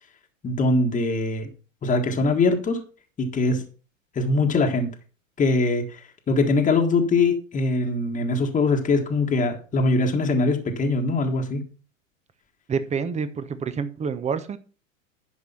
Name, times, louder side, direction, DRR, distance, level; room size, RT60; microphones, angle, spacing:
voice 1, 0.4-1.5 1.8-2.8 3.2-3.6 4.1-4.9 5.4-11.6, left 3 dB, 20° left, 3 dB, 1.6 m, -22 dB
voice 2, 12.7-14.6, right 6 dB, 15° right, 12 dB, 0.9 m, -28 dB
11.0 x 4.7 x 5.8 m, 0.37 s
hypercardioid pair, 110°, 40 cm